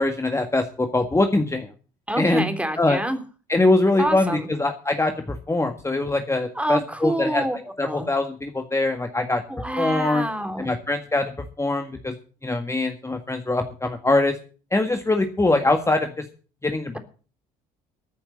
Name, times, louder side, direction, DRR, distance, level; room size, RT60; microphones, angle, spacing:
voice 1, 0.0-1.7 2.2-2.5 2.8-3.0 3.5-7.4 7.8-9.4 9.8-10.3 10.6-12.1 12.4-14.4 14.7-16.2 16.6-17.0, left 2 dB, 15° left, 6 dB, 1.8 m, -23 dB
voice 2, 2.1-3.2 4.0-4.5 6.5-7.6 7.8-8.1 9.5-10.7, right 1 dB, 5° right, 7 dB, 3.2 m, -27 dB
14.5 x 7.0 x 8.4 m, 0.39 s
hypercardioid pair, 60°, 19 cm